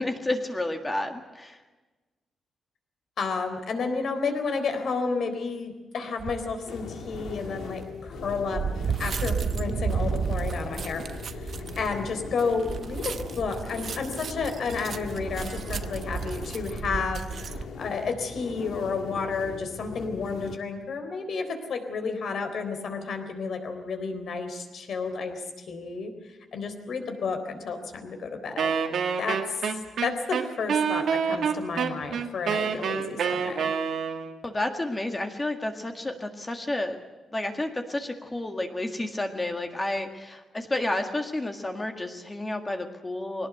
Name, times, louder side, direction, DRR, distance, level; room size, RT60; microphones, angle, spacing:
voice 1, 0.0-1.6 34.4-37.0 37.3-43.5, left 2 dB, 15° left, 5 dB, 1.8 m, -30 dB
voice 2, 3.2-28.7 29.2-33.7, left 4 dB, 55° left, 7 dB, 3.8 m, -31 dB
sound 1, 6.2-6.5 7.1-17.6, right 6 dB, 45° right, 0.9 m, -33 dB
sound 2, 6.7-20.6, left 5 dB, 80° left, 2.6 m, -40 dB
Wind instrument woodwind instrument, 28.6-34.4, right 6 dB, 60° right, 2.2 m, -27 dB
22.0 x 18.5 x 8.0 m, 1.2 s
wide cardioid pair, 165°, 0 cm